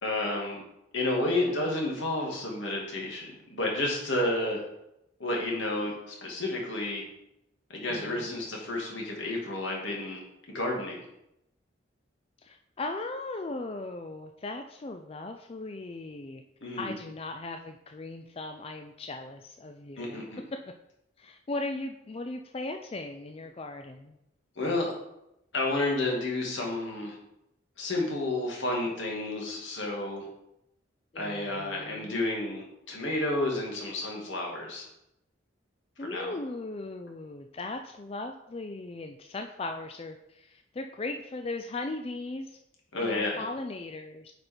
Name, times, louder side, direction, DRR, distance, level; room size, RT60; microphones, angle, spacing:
voice 1, 0.0-0.6 0.9-4.6 5.2-7.0 7.7-10.2 10.5-11.1 16.6-17.0 20.0-20.4 24.6-24.9 25.5-27.2 27.8-30.3 31.2-34.8 36.0-36.3 42.9-43.4, left 2 dB, 75° left, -2 dB, 2.3 m, -31 dB
voice 2, 1.4-1.7 7.9-8.4 12.4-16.4 16.8-20.2 21.2-24.2 31.1-32.3 36.0-42.6 43.0-44.3, left 2 dB, 30° left, 6 dB, 0.4 m, -38 dB
8.1 x 5.0 x 4.5 m, 0.83 s
head